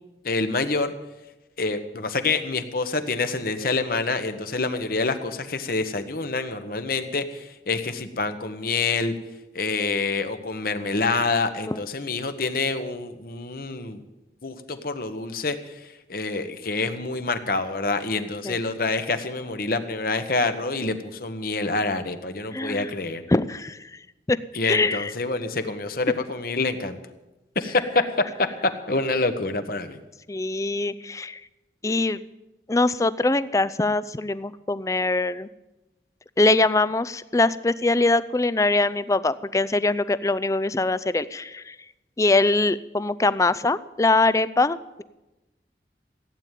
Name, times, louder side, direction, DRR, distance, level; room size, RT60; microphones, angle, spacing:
voice 1, 0.2-0.9 1.6-9.1 9.5-14.0 14.4-15.6 16.1-23.2 24.5-27.0 27.5-27.8 28.9-30.0, left 3 dB, 55° left, 9 dB, 1.2 m, -27 dB
voice 2, 22.5-22.9 23.3-23.8 24.3-24.4 24.7-25.1 30.3-31.4 31.8-32.2 32.7-35.5 36.4-41.8 42.2-45.0, left 2 dB, 20° left, 16 dB, 0.4 m, -23 dB
16.0 x 9.2 x 9.1 m, 1.0 s
head